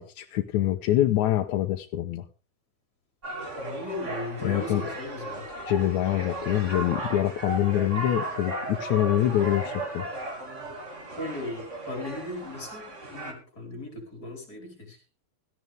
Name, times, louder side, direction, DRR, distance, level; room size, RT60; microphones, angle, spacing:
voice 1, 0.0-2.3 4.4-4.8 5.6-10.1, left 13 dB, 75° left, 4 dB, 2.2 m, -25 dB
sound 1, 3.2-13.3, right 1 dB, 25° right, 2.8 m, -36 dB
voice 2, 3.6-5.5 11.2-15.0, left 2 dB, 30° left, 3 dB, 5.2 m, -37 dB
17.5 x 14.0 x 3.5 m, 0.34 s
omnidirectional pair, 3.4 m